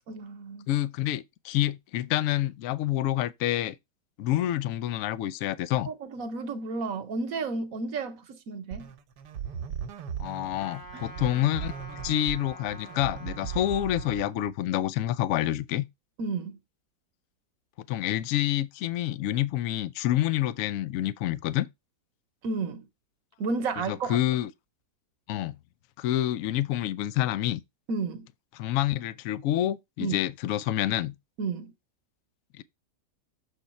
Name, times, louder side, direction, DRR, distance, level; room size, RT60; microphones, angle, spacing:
voice 1, 0.1-0.7 5.9-8.9 10.9-11.1 16.2-16.6 22.4-22.9 23.4-24.2 27.9-28.3 30.0-30.2 31.4-31.7, right 4 dB, 60° right, 1.1 m, -32 dB
voice 2, 0.7-3.8 4.2-5.9 10.2-15.8 17.9-21.7 23.9-24.5 25.3-25.6 26.0-27.6 28.6-31.2 32.6-32.7, left 13 dB, 70° left, 0.8 m, -28 dB
sound 1, 8.7-14.5, right 8 dB, 80° right, 1.3 m, -38 dB
Trumpet, 10.6-14.3, left 1 dB, 40° left, 0.9 m, -46 dB
6.7 x 3.8 x 4.1 m
omnidirectional pair, 1.8 m